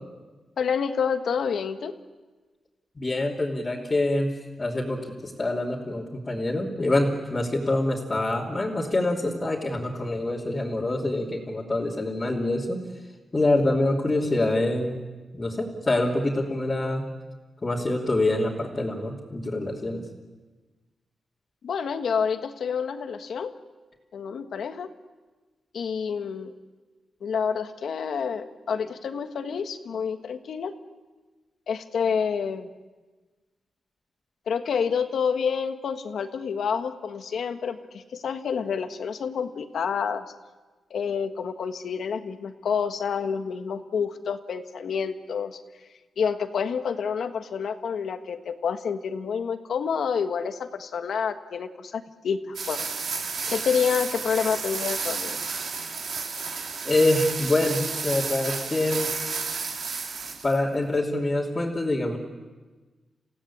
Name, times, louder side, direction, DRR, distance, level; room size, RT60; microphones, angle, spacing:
voice 1, 0.6-1.9 21.6-23.5 24.1-24.9 25.7-26.5 27.2-30.7 31.7-32.7 34.5-40.2 40.9-45.6 46.2-52.9 53.5-55.4, left 6 dB, 75° left, 8 dB, 1.5 m, -28 dB
voice 2, 3.0-4.3 4.6-12.8 13.3-15.0 15.3-17.1 17.6-20.0 56.8-59.1 60.4-62.2, left 2 dB, 25° left, -6 dB, 2.9 m, -25 dB
sound 1, 52.5-60.6, right 5 dB, 70° right, 3.0 m, -32 dB
28.0 x 16.5 x 8.6 m, 1.3 s
wide cardioid pair, 105°, 0 cm